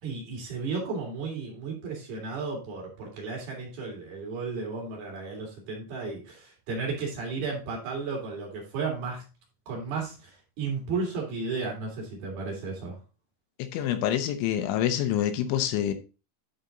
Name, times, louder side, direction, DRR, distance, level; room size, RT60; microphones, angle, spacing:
voice 1, 0.0-9.2 9.7-13.0, right 4 dB, 55° right, 4.3 m, -34 dB
voice 2, 13.6-15.9, left 11 dB, 80° left, 3.3 m, -26 dB
11.5 x 4.4 x 3.9 m
omnidirectional pair, 5.4 m